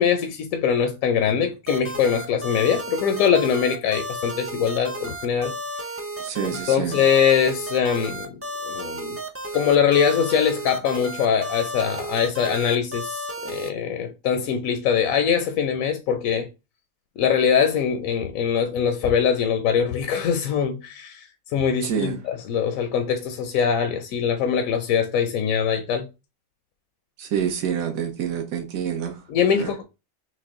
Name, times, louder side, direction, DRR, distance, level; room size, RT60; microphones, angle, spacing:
voice 1, 0.0-5.5 6.4-8.3 8.6-9.2 9.5-16.5 17.2-26.1 29.3-29.8, left 7 dB, 75° left, 1.0 m, -22 dB
sound 1, 1.7-13.7, right 1 dB, 20° right, 0.3 m, -33 dB
voice 2, 6.2-7.0 21.8-22.2 27.2-29.7, right 8 dB, 75° right, 1.4 m, -28 dB
6.2 x 2.2 x 3.6 m
omnidirectional pair, 1.5 m